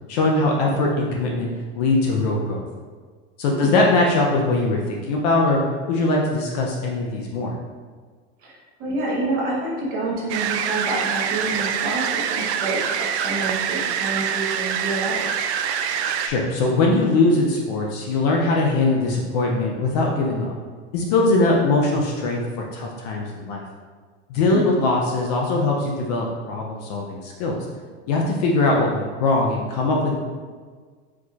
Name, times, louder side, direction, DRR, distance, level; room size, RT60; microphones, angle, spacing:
voice 1, 0.1-1.5 1.7-2.6 3.4-5.6 5.9-7.5 16.2-20.5 20.9-23.6 24.3-27.6 28.1-30.2, left 2 dB, 40° left, -1 dB, 0.5 m, -21 dB
voice 2, 8.4-15.3 24.5-24.8, right 2 dB, 25° right, -4 dB, 0.8 m, -28 dB
sound 1, 10.3-16.3, right 8 dB, 80° right, 0.5 m, -25 dB
4.7 x 4.0 x 2.4 m, 1.5 s
supercardioid pair, 175°, 33 cm